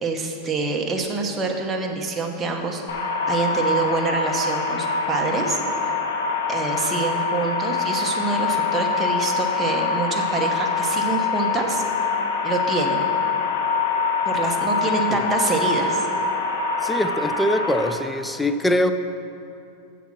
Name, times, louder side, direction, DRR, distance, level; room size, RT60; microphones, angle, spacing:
voice 1, 0.0-6.0 6.5-12.2 12.4-13.1 14.2-16.1, right 3 dB, 15° right, 1 dB, 1.0 m, -26 dB
sound 1, 2.9-17.9, left 4 dB, 85° left, 1.1 m, -24 dB
voice 2, 14.9-15.2 16.8-18.9, left 1 dB, 5° left, 9 dB, 0.4 m, -23 dB
7.2 x 7.0 x 6.1 m, 2.6 s
supercardioid pair, 135°, 0 cm